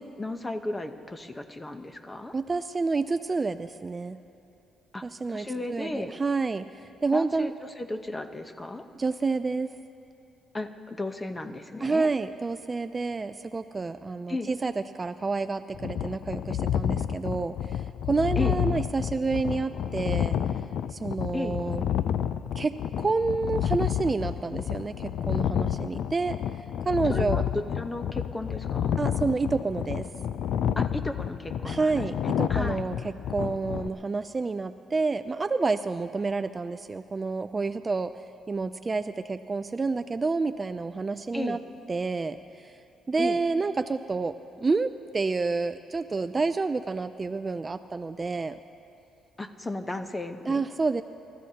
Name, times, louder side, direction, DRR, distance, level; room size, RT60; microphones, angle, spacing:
voice 1, 0.2-2.3 4.9-6.1 7.1-7.5 7.8-8.8 10.5-12.1 14.3-14.5 18.4-18.6 21.3-21.5 27.1-29.0 30.8-32.0 32.5-32.9 41.3-41.6 43.2-43.4 49.4-50.6, left 2 dB, 20° left, 7 dB, 0.9 m, -34 dB
voice 2, 2.3-4.2 5.0-7.5 8.9-9.7 11.8-20.4 20.9-21.8 22.6-26.4 26.8-27.4 29.0-30.1 31.6-38.1 38.5-41.6 41.9-42.7 43.1-48.6 50.5-51.0, right 4 dB, 30° right, 11 dB, 0.4 m, -29 dB
sound 1, 15.7-33.9, left 9 dB, 70° left, 0.4 m, -30 dB
28.5 x 13.5 x 2.9 m, 2.9 s
cardioid pair, 90°, 0 cm